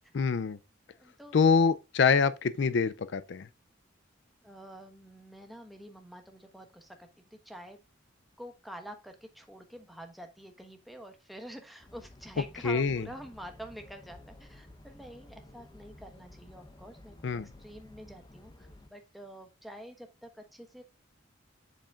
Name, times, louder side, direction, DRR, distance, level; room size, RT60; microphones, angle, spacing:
voice 1, 0.1-0.6 1.3-3.5 12.6-13.0 17.2-17.5, left 5 dB, 60° left, 0.4 m, -25 dB
voice 2, 0.9-1.4 4.4-7.8 8.4-17.2 17.6-20.8, equal, ahead, 1.1 m, -47 dB
sound 1, 11.8-18.9, left 1 dB, 20° left, 0.8 m, -53 dB
7.8 x 7.1 x 2.4 m
head